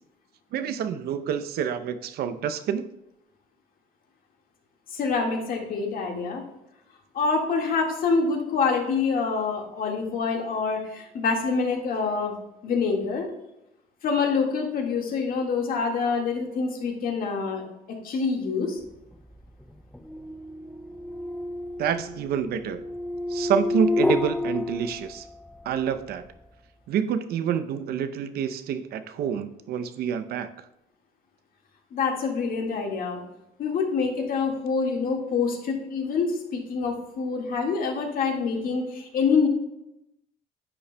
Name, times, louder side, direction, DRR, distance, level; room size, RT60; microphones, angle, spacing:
voice 1, 0.5-2.9 21.8-22.8 23.3-25.3 25.6-26.2 26.9-30.5, right 8 dB, 70° right, 11 dB, 0.6 m, -27 dB
voice 2, 4.9-6.4 7.1-12.4 12.6-13.3 14.0-17.6 18.0-18.8 31.9-33.2 33.6-39.5, left 5 dB, 60° left, 1 dB, 1.8 m, -26 dB
sound 1, 19.1-25.6, left 2 dB, 5° left, 0.4 m, -30 dB
10.0 x 6.9 x 2.2 m, 0.88 s
cardioid pair, 110°, 17 cm